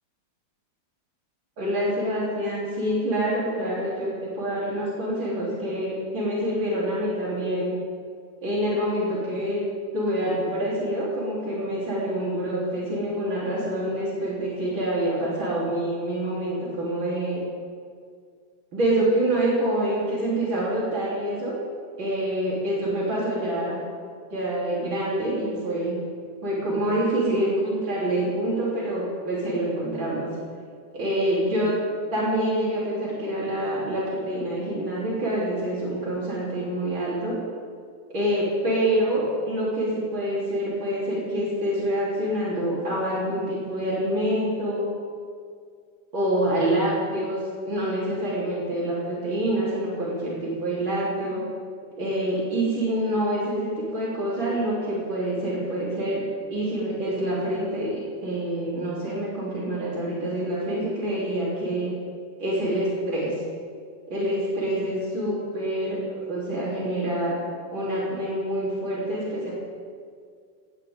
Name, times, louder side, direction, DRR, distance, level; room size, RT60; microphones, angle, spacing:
voice 1, 1.6-7.7 8.4-9.6 9.9-17.4 18.7-21.6 22.0-23.8 24.3-26.0 26.4-30.3 30.9-31.8 32.1-37.4 38.1-44.8 46.1-51.4 52.0-56.2 56.5-61.9 62.4-63.3 64.1-66.0 66.3-67.4 67.7-69.5, right 1 dB, 90° right, -7 dB, 4.6 m, -26 dB
19.5 x 18.0 x 3.8 m, 2.1 s
omnidirectional pair, 2.1 m